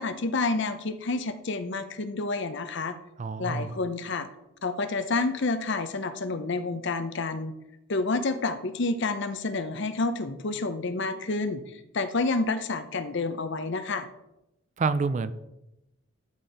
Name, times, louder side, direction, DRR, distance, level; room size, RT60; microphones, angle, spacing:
voice 1, 0.0-3.0 3.4-4.3 4.6-7.5 7.9-11.6 11.9-14.1, left 3 dB, 55° left, 10 dB, 0.7 m, -29 dB
voice 2, 3.2-3.7 14.8-15.3, right 4 dB, 35° right, 14 dB, 0.3 m, -27 dB
11.5 x 4.4 x 5.0 m, 0.91 s
head